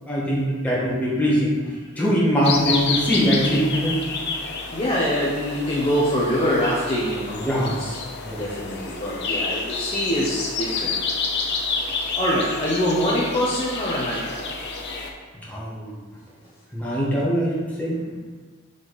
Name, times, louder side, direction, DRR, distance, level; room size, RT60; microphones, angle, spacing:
voice 1, 0.0-4.0 7.4-7.8 8.2-8.4 15.4-16.0 16.7-18.0, equal, 5° left, -7 dB, 1.6 m, -22 dB
sound 1, 2.4-15.1, left 4 dB, 55° left, 0.8 m, -29 dB
voice 2, 4.7-8.0 8.4-11.0 12.2-14.5, equal, 25° left, -6 dB, 0.9 m, -24 dB
5.6 x 5.1 x 4.1 m, 1.4 s
head